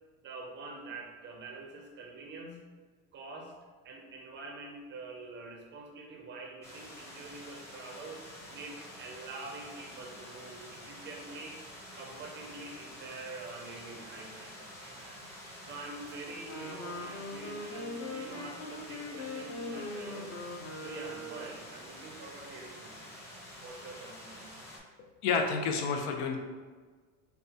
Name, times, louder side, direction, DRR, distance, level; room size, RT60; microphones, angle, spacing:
voice 1, 0.2-2.7 3.1-3.6 3.8-11.6 11.9-15.2 15.7-20.3 20.8-23.1 23.6-24.6, right 3 dB, 30° right, 2 dB, 0.5 m, -46 dB
sound 1, 6.6-24.8, equal, 10° left, 0.7 m, -48 dB
Wind instrument woodwind instrument, 16.4-21.6, left 2 dB, 40° left, 0.6 m, -41 dB
voice 2, 25.2-26.4, left 5 dB, 80° left, 3 dB, 0.8 m, -29 dB
6.6 x 2.4 x 2.8 m, 1.5 s
cardioid pair, 165°, 37 cm